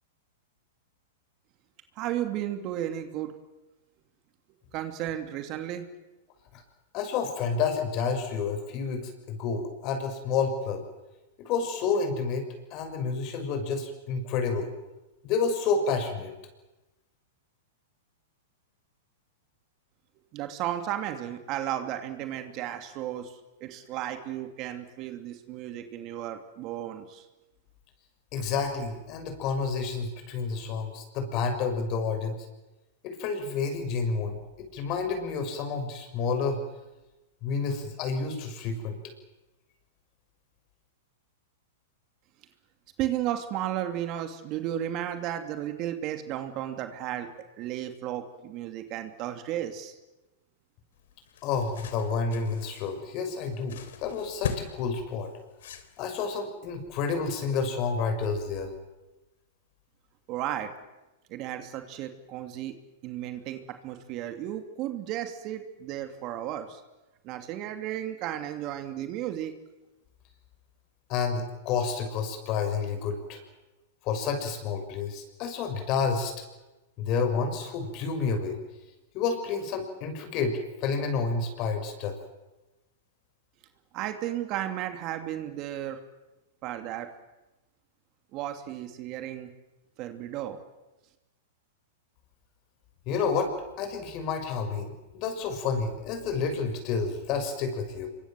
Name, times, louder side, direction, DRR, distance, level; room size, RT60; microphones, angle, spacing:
voice 1, 2.0-3.3 4.7-5.9 20.3-27.2 43.0-47.3 47.6-50.0 60.3-60.7 61.3-62.7 63.0-66.8 67.2-69.5 83.9-86.0 86.6-87.1 88.3-89.5 90.0-90.6, right 12 dB, 40° right, 7 dB, 2.7 m, -34 dB
voice 2, 6.9-10.8 11.4-14.7 15.2-16.3 28.3-32.5 33.0-36.6 37.4-39.0 51.4-55.3 56.0-58.7 71.1-73.4 74.0-76.3 77.0-78.6 79.1-82.1 93.1-93.5 93.8-98.1, left 5 dB, 40° left, 6 dB, 6.7 m, -30 dB
sound 1, 51.0-56.4, left 7 dB, 75° left, 3.6 m, -40 dB
26.0 x 24.0 x 7.7 m, 1.0 s
hypercardioid pair, 135°, 0 cm